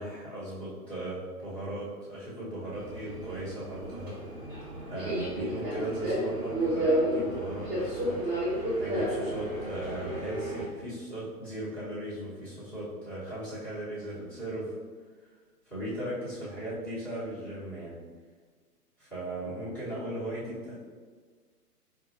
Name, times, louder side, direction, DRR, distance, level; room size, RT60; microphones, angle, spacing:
voice 1, 0.0-4.2 4.9-8.2 8.8-14.7 15.7-18.0 19.0-20.8, right 1 dB, 5° left, -15 dB, 1.1 m, -37 dB
Subway metro underground, 2.7-10.7, right 1 dB, 15° right, 0.7 m, -32 dB
4.6 x 2.5 x 2.6 m, 1.5 s
hypercardioid pair, 150°, 48 cm